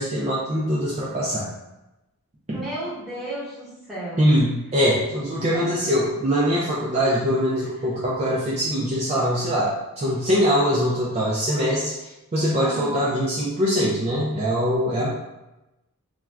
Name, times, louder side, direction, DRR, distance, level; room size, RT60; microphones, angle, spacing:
voice 1, 0.0-1.5 2.5-2.6 4.2-15.1, equal, 30° right, -6 dB, 0.4 m, -23 dB
voice 2, 2.5-4.3 5.5-5.7 12.6-13.0, right 1 dB, ahead, -10 dB, 1.1 m, -33 dB
2.4 x 2.2 x 3.2 m, 0.98 s
head